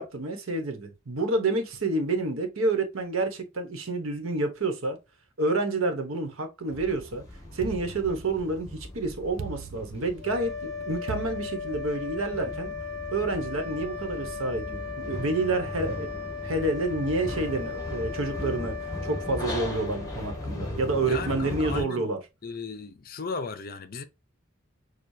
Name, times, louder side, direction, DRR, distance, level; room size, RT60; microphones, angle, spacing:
voice 1, 0.0-5.0 5.4-7.2 7.5-12.7 13.1-16.1 16.4-18.8 19.0-22.2, right 2 dB, 80° right, 1.1 m, -29 dB
sound 1, 6.7-21.8, left 1 dB, 15° left, 1.3 m, -38 dB
sound 2, 7.6-8.7 9.4-10.4 11.1-12.2, right 6 dB, 65° right, 0.5 m, -40 dB
sound 3, 10.2-20.8, left 5 dB, 30° right, 0.9 m, -37 dB
voice 2, 21.1-22.1 22.4-24.0, left 4 dB, 45° left, 0.6 m, -36 dB
6.4 x 2.3 x 2.7 m
head